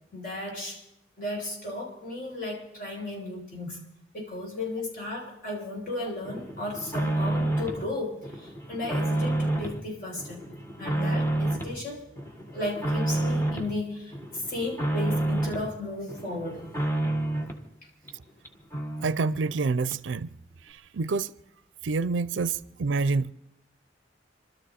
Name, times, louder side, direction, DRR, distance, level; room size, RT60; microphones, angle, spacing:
voice 1, 0.1-0.8 1.2-3.8 4.1-10.4 10.8-12.1 12.5-16.6, left 2 dB, 50° left, 6.8 m, -34 dB
sound 1, 6.3-7.9 8.2-9.8 10.2-11.8 12.2-13.7 14.1-15.7 16.1-17.6 18.1-18.2 18.4-18.5 18.7-19.6 19.9-20.0, right 1 dB, 15° left, 1.5 m, -29 dB
voice 2, 19.0-20.3 20.9-21.3 21.8-23.3, right 4 dB, 90° right, 0.5 m, -27 dB
26.5 x 13.0 x 4.2 m
head